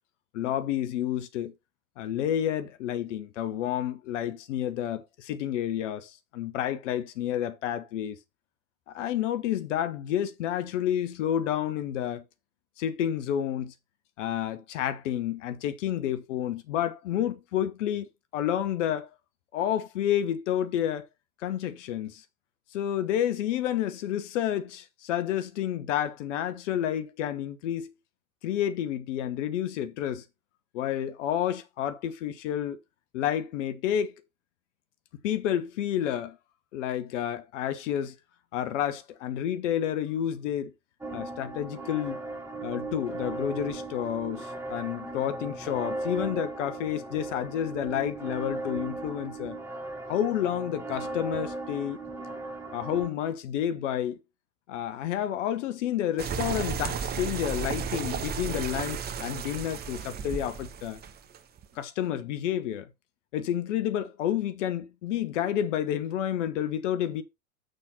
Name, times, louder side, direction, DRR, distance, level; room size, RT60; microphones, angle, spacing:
voice 1, 0.3-1.5 2.0-8.2 8.9-12.2 12.8-13.7 14.2-19.1 19.5-21.1 21.4-22.2 22.7-27.9 28.4-30.2 30.7-32.8 33.1-34.1 35.2-36.4 36.7-38.1 38.5-40.7 41.1-42.2 42.6-49.6 50.1-52.0 52.7-54.2 54.7-61.0 61.8-62.9 63.3-67.2, left 10 dB, 55° left, 1.0 m, -30 dB
sound 1, 41.0-53.1, right 3 dB, 5° right, 1.6 m, -37 dB
sound 2, 56.2-61.7, right 6 dB, 20° right, 0.8 m, -33 dB
6.4 x 5.8 x 4.1 m
figure-of-eight pair, 90°, 44 cm